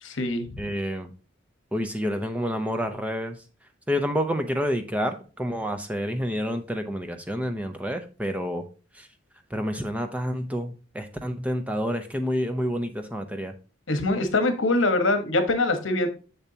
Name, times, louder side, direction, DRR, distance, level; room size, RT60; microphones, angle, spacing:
voice 1, 0.0-0.6 13.9-16.1, left 2 dB, 70° left, 8 dB, 1.1 m, -23 dB
voice 2, 0.6-1.1 1.7-3.3 3.9-8.6 9.5-13.5, equal, 5° right, 6 dB, 0.6 m, -28 dB
7.2 x 6.9 x 2.8 m, 0.34 s
head